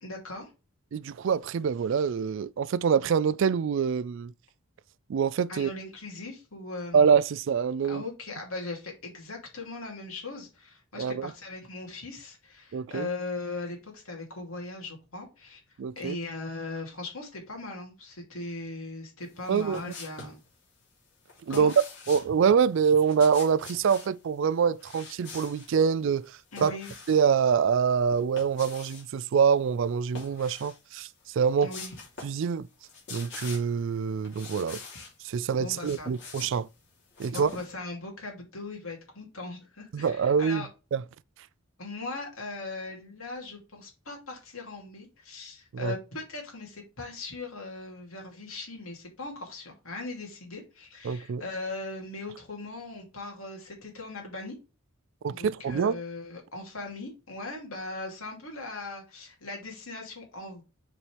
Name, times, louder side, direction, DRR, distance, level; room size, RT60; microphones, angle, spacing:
voice 1, 0.0-0.5 5.5-7.1 7.9-20.4 21.5-21.7 26.5-26.9 31.6-31.9 35.6-36.1 37.3-40.7 41.8-54.5 55.3-60.6, left 2 dB, 80° left, 2.7 m, -39 dB
voice 2, 0.9-4.3 5.1-5.7 6.9-8.0 11.0-11.3 12.7-13.1 15.8-16.2 19.5-19.9 21.5-21.7 22.1-26.7 27.1-31.1 31.3-31.7 32.2-32.7 33.1-34.8 35.2-36.7 37.2-37.5 39.9-40.7 40.9-41.0 45.7-45.9 51.0-51.4 55.2-56.0, right 6 dB, 60° right, 0.3 m, -25 dB
sound 1, 19.4-20.4 21.3-22.3 23.0-24.1 24.8-25.7 26.2-27.3 28.1-29.1 30.0-30.8 31.2-31.3 31.7-32.4 32.7-33.8 34.2-35.1 35.6-37.7, left 4 dB, 60° left, 3.0 m, -45 dB
6.9 x 4.4 x 3.4 m
head